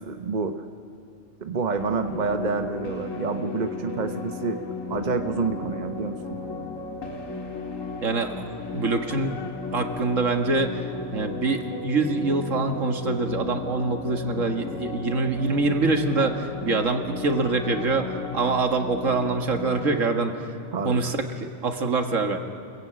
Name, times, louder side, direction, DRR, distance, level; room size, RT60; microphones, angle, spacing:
voice 1, 0.0-0.6 1.4-4.6 4.9-6.4 20.7-21.1, right 4 dB, 35° right, 7 dB, 1.1 m, -28 dB
sound 1, 1.7-20.1, left 3 dB, 80° left, 2.3 m, -35 dB
voice 2, 8.0-9.4 9.7-10.8 11.1-20.3 20.8-22.4, right 3 dB, 70° right, 5 dB, 2.1 m, -25 dB
30.0 x 22.5 x 8.9 m, 2.8 s
omnidirectional pair, 1.4 m